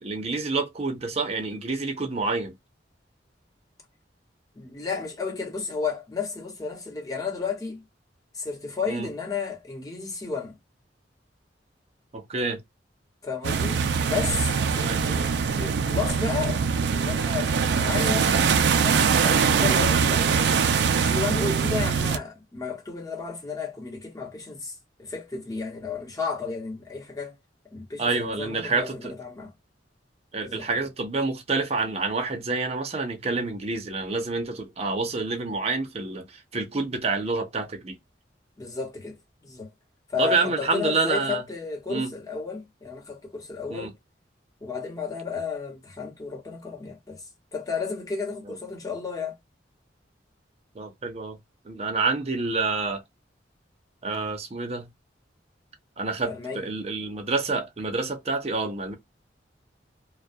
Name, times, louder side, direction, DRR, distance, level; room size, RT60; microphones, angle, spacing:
voice 1, 0.0-2.5 8.9-9.1 12.1-12.6 14.8-15.0 28.0-29.1 30.3-38.0 40.2-41.4 41.9-42.1 43.7-43.9 48.4-48.5 50.7-51.4 51.6-53.0 54.0-54.9 56.0-58.9, right 3 dB, 35° right, 0.7 m, -28 dB
voice 2, 4.6-7.8 8.3-10.6 13.2-16.6 16.9-18.3 18.7-20.3 20.9-27.3 27.7-29.5 30.4-30.7 38.6-39.7 40.1-43.9 44.6-49.4 56.2-56.7, left 5 dB, 20° left, 1.0 m, -33 dB
sound 1, 13.4-22.2, right 6 dB, 70° right, 0.4 m, -23 dB
2.2 x 2.2 x 2.6 m
head